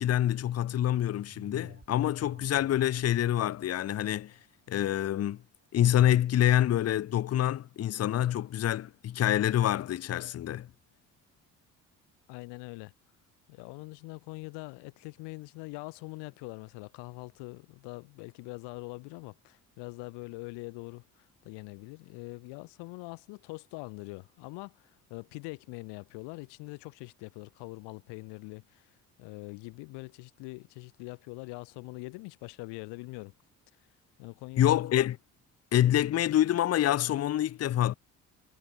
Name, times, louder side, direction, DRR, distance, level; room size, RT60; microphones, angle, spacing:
voice 1, 0.0-4.3 4.7-5.4 5.7-10.7 34.6-35.2 35.7-37.9, left 12 dB, 35° left, 0.7 m, -26 dB
sound 1, 1.3-6.2 6.7-6.8, right 3 dB, 20° right, 5.5 m, -57 dB
voice 2, 12.3-12.9 13.5-28.9 29.2-33.3 34.2-34.8, left 26 dB, 60° left, 0.9 m, -43 dB
figure-of-eight pair, 50°, 46 cm